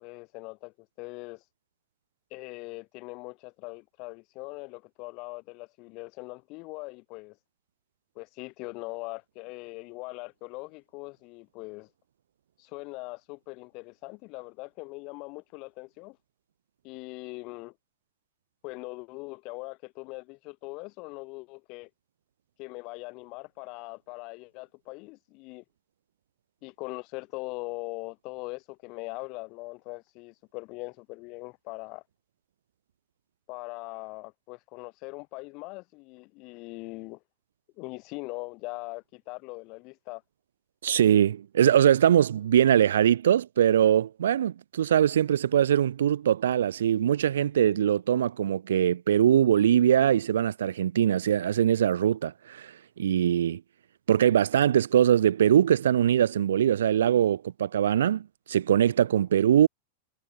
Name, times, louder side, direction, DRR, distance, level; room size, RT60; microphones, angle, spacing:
voice 1, 0.0-1.4 2.3-7.4 8.1-11.9 12.6-16.2 16.8-17.7 18.6-21.9 22.6-25.6 26.6-32.0 33.5-37.2 37.8-40.2, left 26 dB, 40° left, 1.6 m, -41 dB
voice 2, 40.8-53.6 54.1-59.7, right 10 dB, 90° right, 0.3 m, -22 dB
supercardioid pair, 145°, 0 cm